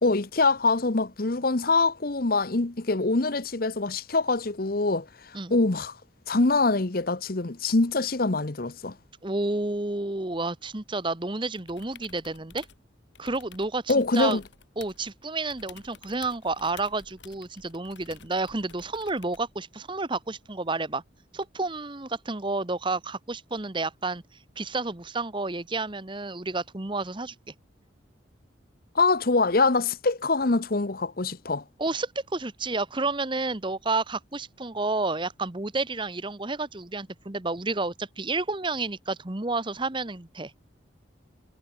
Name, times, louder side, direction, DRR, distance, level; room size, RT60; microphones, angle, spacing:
voice 1, 0.0-6.0 6.3-8.9 13.9-14.4 28.9-31.6, left 3 dB, 50° left, 1.0 m, -24 dB
voice 2, 9.2-12.6 13.2-14.4 14.8-21.0 21.3-24.2 24.6-27.3 31.8-40.5, right 3 dB, 25° right, 1.1 m, -30 dB
sound 1, 11.6-12.8 13.2-15.1 15.5-19.5 21.4-21.5, left 6 dB, 70° left, 6.6 m, -51 dB
head